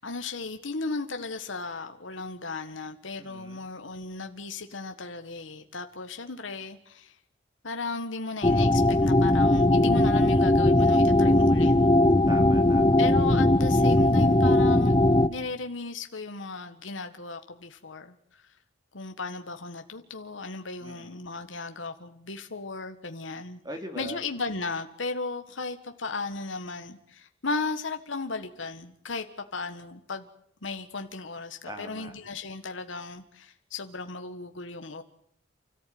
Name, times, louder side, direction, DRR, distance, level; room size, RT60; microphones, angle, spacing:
voice 1, 0.0-7.2 7.6-11.7 13.0-18.4 18.9-23.6 23.9-29.2 29.5-30.3 30.6-35.0, left 3 dB, 80° left, 1.6 m, -36 dB
voice 2, 3.2-3.6 12.3-13.0 20.8-21.1 23.6-24.2 31.6-32.1, right 1 dB, 20° right, 2.9 m, -41 dB
sound 1, 8.4-15.3, left 1 dB, 25° left, 0.9 m, -20 dB
29.5 x 14.5 x 9.4 m
head